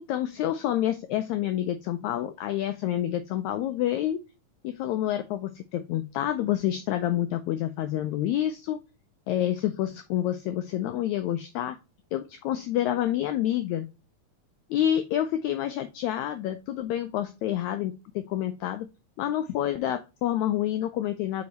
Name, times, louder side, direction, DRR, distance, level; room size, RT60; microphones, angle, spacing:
voice 1, 0.0-4.2 4.6-8.8 9.3-11.8 12.1-13.9 14.7-18.9 19.2-21.4, left 12 dB, 80° left, 9 dB, 1.7 m, -28 dB
5.3 x 4.8 x 4.0 m, 0.28 s
omnidirectional pair, 3.8 m